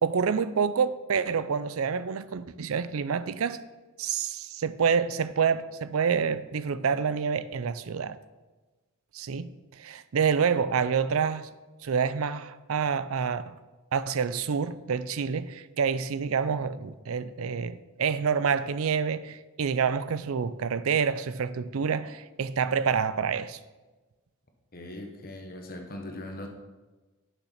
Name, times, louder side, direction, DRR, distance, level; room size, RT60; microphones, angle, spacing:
voice 1, 0.0-3.6 4.0-8.2 9.1-11.5 11.8-13.4 13.9-23.6, right 6 dB, 65° right, 0.5 m, -27 dB
voice 2, 24.7-26.5, left 1 dB, 45° left, 1.3 m, -40 dB
8.8 x 6.7 x 5.8 m
head